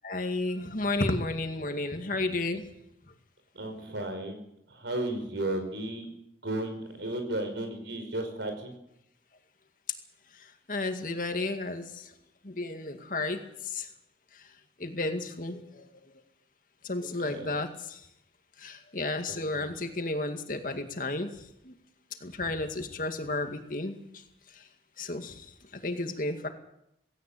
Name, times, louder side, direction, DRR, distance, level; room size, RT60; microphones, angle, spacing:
voice 1, 0.0-2.6 10.7-12.1 12.4-13.9 14.8-15.9 16.8-18.0 18.6-21.3 21.6-21.7 22.2-24.1 25.0-25.5 25.7-26.5, left 2 dB, 50° left, 6 dB, 2.2 m, -32 dB
voice 2, 3.5-4.4 4.7-6.1 6.4-8.7 17.2-17.5 19.3-19.7, right 1 dB, 85° right, 7 dB, 5.0 m, -34 dB
17.5 x 17.5 x 8.6 m, 0.81 s
head